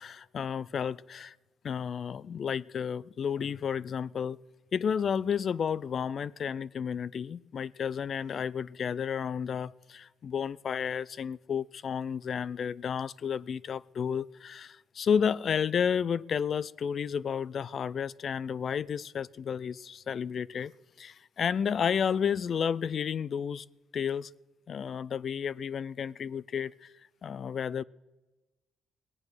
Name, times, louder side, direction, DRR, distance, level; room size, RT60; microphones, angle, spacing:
voice 1, 0.0-1.3 1.6-4.4 4.7-20.7 21.0-23.7 23.9-24.3 24.7-26.9 27.2-27.8, left 7 dB, 50° left, 22 dB, 0.4 m, -32 dB
19.5 x 8.8 x 6.2 m, 1.1 s
cardioid pair, 90°, 0 cm